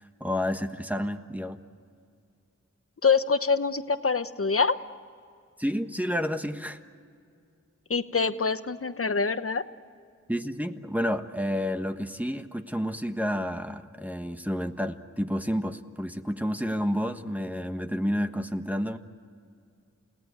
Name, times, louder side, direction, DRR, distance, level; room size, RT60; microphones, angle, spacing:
voice 1, 0.0-1.6 5.6-6.8 10.3-19.0, equal, 5° right, 6 dB, 1.3 m, -30 dB
voice 2, 3.0-4.8 7.9-9.6, left 5 dB, 50° left, 11 dB, 1.1 m, -25 dB
29.5 x 17.5 x 9.5 m, 2.3 s
wide cardioid pair, 55°, 29 cm